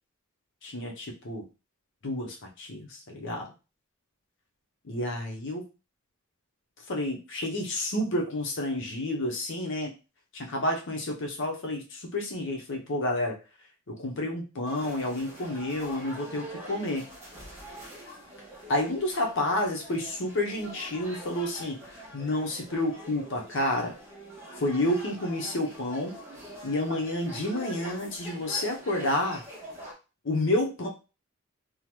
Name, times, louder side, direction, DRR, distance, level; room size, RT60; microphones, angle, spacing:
voice 1, 0.6-1.4 2.0-3.5 4.9-5.7 6.9-9.9 10.3-13.4 13.9-17.1 18.7-23.9 24.6-26.1 26.6-29.4 30.2-30.9, left 1 dB, 60° left, 1 dB, 0.8 m, -30 dB
sound 1, 14.6-29.9, right 1 dB, 10° right, 1.1 m, -44 dB
3.7 x 2.1 x 3.0 m, 0.30 s
head